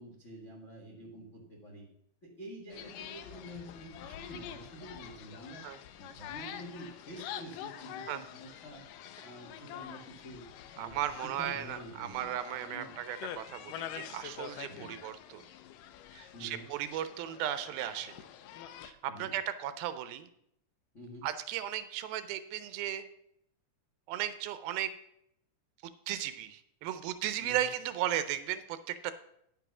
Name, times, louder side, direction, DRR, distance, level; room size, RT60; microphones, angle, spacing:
voice 1, 0.0-1.9 2.2-5.6 6.0-8.8 9.2-10.4 10.7-12.3 12.6-13.0 14.7-15.0 16.3-16.7 19.1-19.3 20.9-21.3 27.4-27.7, equal, 50° left, 1 dB, 0.8 m, -48 dB
sound 1, 2.7-18.9, left 10 dB, 80° left, 1.9 m, -46 dB
voice 2, 10.8-15.4 16.1-18.2 18.8-20.3 21.2-23.1 24.1-24.9 26.1-29.1, right 11 dB, 80° right, 12 dB, 2.4 m, -36 dB
10.0 x 7.0 x 6.0 m, 0.74 s
omnidirectional pair, 4.5 m